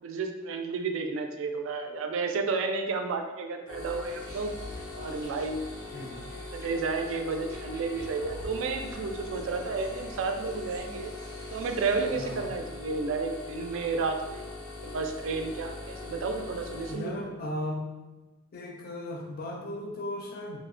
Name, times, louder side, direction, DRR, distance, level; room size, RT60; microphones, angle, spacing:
voice 1, 0.0-4.5 4.9-5.7 6.5-11.1 11.5-14.4 14.8-17.3, right 4 dB, 70° right, 5 dB, 0.3 m, -31 dB
sound 1, 3.7-16.9, left 3 dB, 90° left, 0.7 m, -41 dB
sound 2, 3.8-12.6, equal, 15° right, 0.5 m, -49 dB
voice 2, 5.9-6.3 12.1-12.6 16.9-17.9 18.5-20.6, left 1 dB, 50° left, 1 dB, 0.4 m, -36 dB
2.8 x 2.1 x 2.4 m, 1.1 s
head